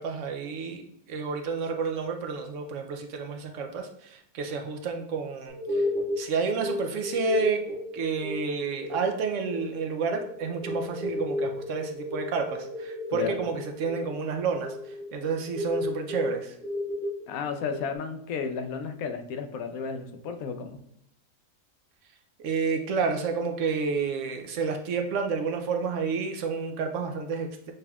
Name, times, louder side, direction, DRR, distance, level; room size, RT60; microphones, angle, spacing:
voice 1, 0.0-5.9 6.2-7.6 7.9-16.6 22.4-27.7, right 4 dB, 70° right, 5 dB, 0.8 m, -30 dB
sound 1, 5.5-18.0, left 1 dB, 5° left, 1.3 m, -34 dB
voice 2, 17.3-20.8, left 6 dB, 80° left, 7 dB, 1.0 m, -33 dB
6.4 x 3.4 x 2.3 m, 0.74 s
omnidirectional pair, 1.5 m